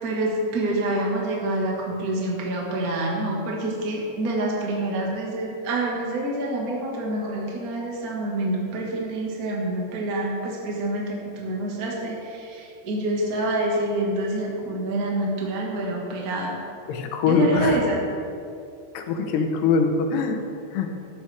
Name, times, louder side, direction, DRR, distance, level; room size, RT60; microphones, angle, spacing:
voice 1, 0.0-16.6 17.3-18.0, right 1 dB, 55° right, -2 dB, 1.0 m, -27 dB
voice 2, 16.9-17.8 18.9-20.4 20.7-20.9, left 4 dB, 85° left, 4 dB, 3.1 m, -22 dB
14.0 x 13.0 x 3.5 m, 2.6 s
omnidirectional pair, 4.6 m